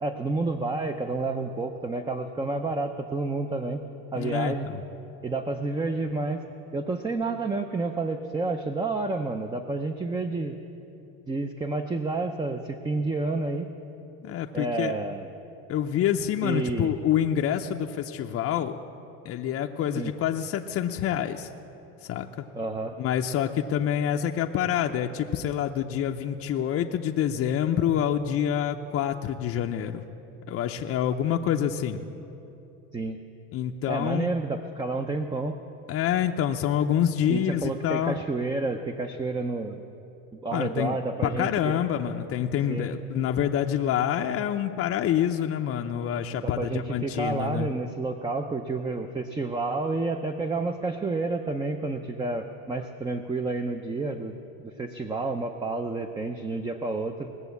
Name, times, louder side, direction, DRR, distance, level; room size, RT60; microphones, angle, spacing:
voice 1, 0.0-3.8 4.1-4.7 5.2-6.4 6.7-10.6 11.3-13.7 14.5-15.3 16.4-16.9 19.9-20.1 22.5-23.0 32.9-33.2 33.9-35.6 37.3-39.8 40.3-41.8 42.7-42.9 46.4-54.4 54.6-57.3, right 3 dB, 15° right, 6 dB, 0.6 m, -30 dB
voice 2, 4.1-4.8 14.2-14.9 15.7-18.8 19.2-21.5 22.0-22.5 23.0-30.1 30.5-32.0 33.5-34.3 35.9-38.2 40.5-41.0 41.2-47.7, left 10 dB, 45° left, 3 dB, 0.6 m, -27 dB
19.5 x 7.0 x 8.2 m, 3.0 s
supercardioid pair, 110°, 33 cm